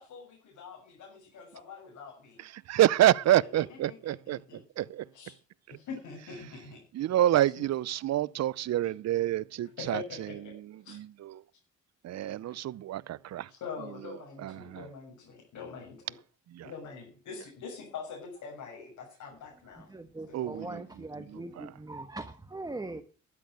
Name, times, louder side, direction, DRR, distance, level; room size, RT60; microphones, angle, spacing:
voice 1, 0.0-2.4 3.5-4.9 5.1-5.4 5.7-6.8 7.4-7.7 8.8-8.9 9.6-10.5 10.8-11.0 12.5-12.6 13.5-16.1 16.6-19.9 20.3-20.8, left 5 dB, 75° left, 6.9 m, -44 dB
voice 2, 2.7-4.4 4.8-5.0 6.9-10.0 10.9-11.3 12.0-13.5 14.4-14.8 16.6-16.7 20.3-20.8 21.3-21.7, right 13 dB, 60° right, 0.6 m, -27 dB
voice 3, 19.9-23.0, right 2 dB, 15° right, 1.4 m, -41 dB
12.5 x 11.0 x 6.3 m
cardioid pair, 90°, 30 cm